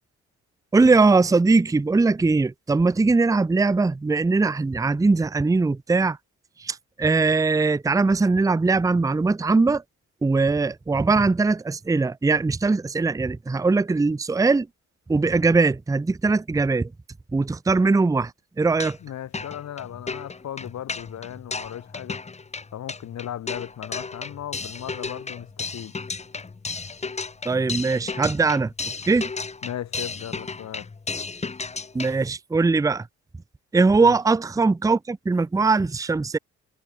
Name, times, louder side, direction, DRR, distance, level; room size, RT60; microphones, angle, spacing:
voice 1, 0.7-6.2 6.6-9.8 10.2-14.7 15.1-16.9 17.3-18.3 18.6-19.0 27.4-28.7 29.1-29.3 31.9-33.1 33.7-36.4, right 3 dB, 10° right, 0.6 m, -21 dB
sound 1, 18.6-19.1 19.3-32.2, left 4 dB, 20° left, 1.3 m, -34 dB
voice 2, 19.0-22.2 22.7-25.9 29.6-30.9 34.0-34.2, left 11 dB, 65° left, 1.9 m, -36 dB
cardioid pair, 90°, 30 cm